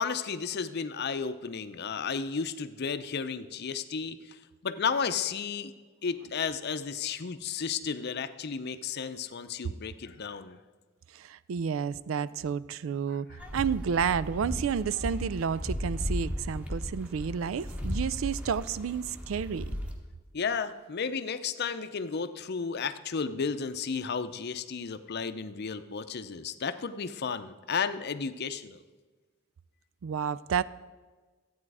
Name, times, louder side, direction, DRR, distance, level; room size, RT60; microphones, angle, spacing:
voice 1, 0.0-4.4 4.6-5.7 6.0-10.6 20.3-28.8, left 6 dB, 55° left, 11 dB, 0.6 m, -33 dB
voice 2, 11.1-13.3 13.5-19.7 30.0-30.6, right 7 dB, 75° right, 18 dB, 0.4 m, -30 dB
sound 1, 13.4-19.9, equal, 5° right, 1.4 m, -36 dB
14.0 x 8.7 x 4.8 m, 1.4 s
head